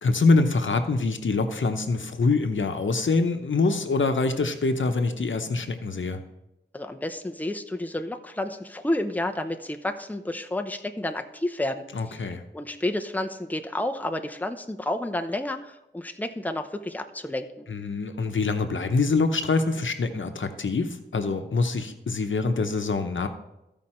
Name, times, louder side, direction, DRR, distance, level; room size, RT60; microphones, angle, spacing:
voice 1, 0.0-6.2 11.9-12.4 17.7-23.3, left 3 dB, 85° left, 7 dB, 0.8 m, -25 dB
voice 2, 6.7-12.2 12.5-17.7, left 1 dB, 10° left, 5 dB, 0.7 m, -30 dB
14.5 x 5.2 x 4.3 m, 0.91 s
wide cardioid pair, 75°, 19 cm